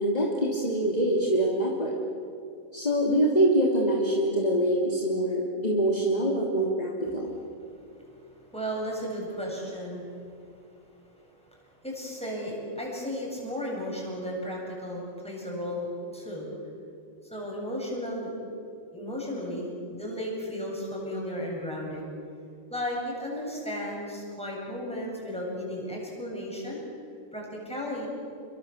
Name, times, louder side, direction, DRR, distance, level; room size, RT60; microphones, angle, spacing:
voice 1, 0.0-1.9 2.7-7.3, right 1 dB, 30° left, -2 dB, 3.0 m, -25 dB
voice 2, 7.7-10.1 11.5-11.6 11.8-16.5 17.3-18.3 18.9-22.1 22.7-26.8 27.3-28.1, equal, 5° left, -3 dB, 7.9 m, -34 dB
30.0 x 24.0 x 7.3 m, 2.5 s
omnidirectional pair, 1.4 m